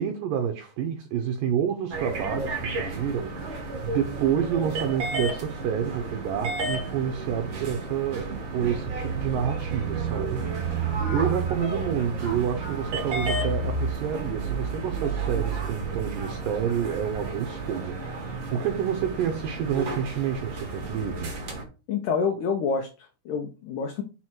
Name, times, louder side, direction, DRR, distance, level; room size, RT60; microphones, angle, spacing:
voice 1, 0.0-21.4, right 8 dB, 75° right, 2.1 m, -29 dB
sound 1, 1.9-21.6, right 4 dB, 55° right, 1.3 m, -31 dB
voice 2, 21.9-24.0, left 5 dB, 75° left, 1.8 m, -28 dB
6.2 x 4.4 x 4.4 m
omnidirectional pair, 4.6 m